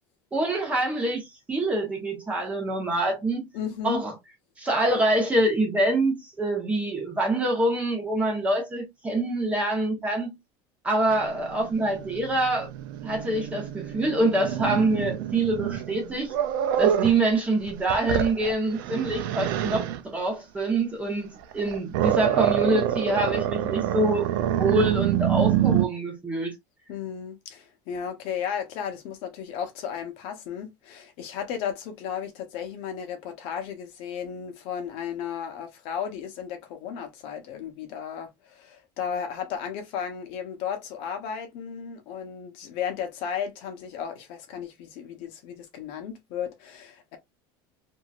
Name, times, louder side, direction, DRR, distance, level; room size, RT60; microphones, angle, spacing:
voice 1, 0.3-3.5 3.8-4.1 4.6-10.4 10.8-12.7 13.0-16.3 16.8-26.5, right 2 dB, 10° right, 1.1 m, -25 dB
voice 2, 3.5-4.0 26.9-47.2, left 8 dB, 60° left, 0.8 m, -34 dB
Growling, 11.1-17.2 17.7-20.0 21.4-25.9, right 11 dB, 85° right, 0.5 m, -27 dB
2.9 x 2.7 x 2.4 m
cardioid pair, 160°, 11 cm